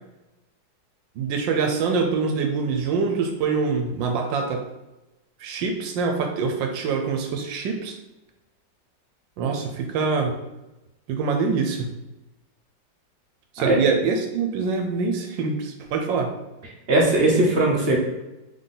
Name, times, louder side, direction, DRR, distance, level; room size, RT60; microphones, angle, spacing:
voice 1, 1.2-4.6 5.4-8.0 9.4-10.4 11.1-11.9 13.5-16.3, right 5 dB, 85° right, 4 dB, 1.3 m, -25 dB
voice 2, 16.9-18.0, right 2 dB, 55° right, -1 dB, 0.7 m, -19 dB
3.9 x 3.4 x 3.7 m, 1.0 s
omnidirectional pair, 2.0 m